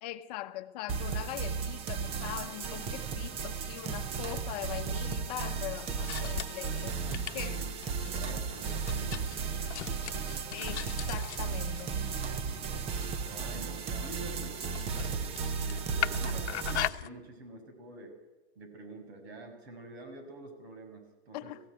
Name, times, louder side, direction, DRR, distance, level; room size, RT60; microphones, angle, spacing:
voice 1, 0.0-6.9 7.3-7.6 10.5-12.1 21.3-21.6, left 15 dB, 35° left, 0.9 m, -41 dB
sound 1, 0.9-16.9, right 5 dB, 15° right, 0.7 m, -35 dB
sound 2, 5.7-17.1, left 12 dB, 75° left, 1.0 m, -41 dB
voice 2, 6.7-7.7 8.0-9.5 10.6-10.9 13.2-18.1 18.6-21.6, right 2 dB, 65° right, 5.9 m, -47 dB
20.0 x 15.5 x 9.3 m
hypercardioid pair, 155°, 34 cm